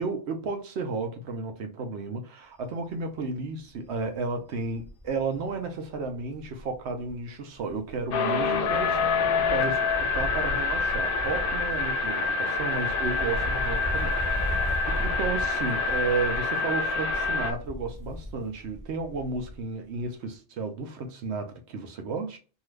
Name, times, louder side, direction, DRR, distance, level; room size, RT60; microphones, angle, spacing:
voice 1, 0.0-14.8 15.0-22.4, right 4 dB, 70° right, 0.9 m, -33 dB
Wind, 2.7-3.0 3.3-3.4 3.7-7.3 7.6-19.7 20.0-20.1, left 1 dB, 20° right, 0.6 m, -37 dB
sound 1, 8.1-17.5, left 4 dB, 60° left, 0.7 m, -27 dB
2.7 x 2.4 x 3.1 m
omnidirectional pair, 1.2 m